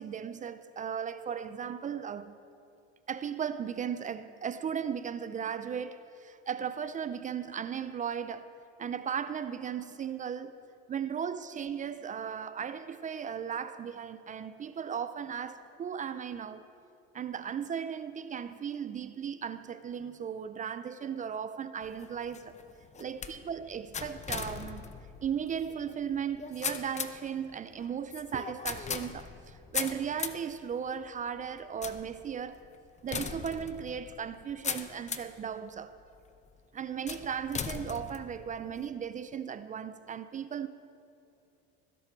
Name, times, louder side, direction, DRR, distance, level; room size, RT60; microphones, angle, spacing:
voice 1, 0.0-2.4 3.1-8.5 8.8-10.6 10.9-16.7 17.1-22.6 23.0-24.8 25.2-32.6 33.0-36.0 36.7-40.7, right 7 dB, 25° right, 0.4 m, -36 dB
sound 1, 21.8-35.4 36.0-36.4 37.1-38.9, left 6 dB, 20° left, 0.7 m, -40 dB
19.5 x 11.0 x 4.6 m
supercardioid pair, 105°, 31 cm